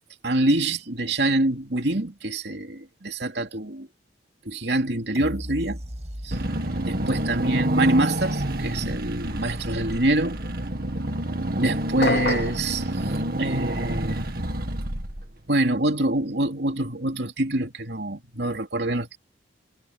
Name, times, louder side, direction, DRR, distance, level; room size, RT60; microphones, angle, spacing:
voice 1, 0.2-3.9 4.4-5.8 6.2-6.4 6.9-10.4 11.6-12.9 13.4-14.3 15.5-19.2, right 1 dB, 70° right, 3.0 m, -25 dB
sound 1, 5.1-10.0 10.5-10.6, equal, 40° right, 7.1 m, -39 dB
Car / Engine, 6.3-15.5, right 1 dB, 55° right, 2.2 m, -28 dB
sound 2, 12.0-12.6, left 2 dB, 65° left, 2.8 m, -25 dB
head